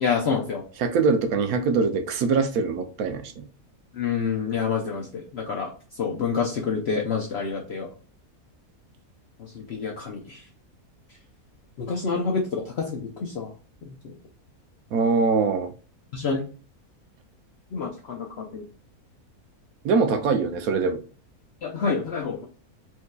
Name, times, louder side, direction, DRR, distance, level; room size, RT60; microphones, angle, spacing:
voice 1, 0.0-0.6 4.0-5.7 6.0-7.9 9.5-10.4 11.8-13.5 16.1-16.4 17.7-18.6 21.6-22.5, left 5 dB, 60° left, 0 dB, 0.7 m, -27 dB
voice 2, 0.8-3.5 14.9-15.7 19.8-21.0, right 4 dB, 75° right, 7 dB, 1.0 m, -23 dB
4.5 x 2.7 x 2.2 m, 0.38 s
omnidirectional pair, 1.6 m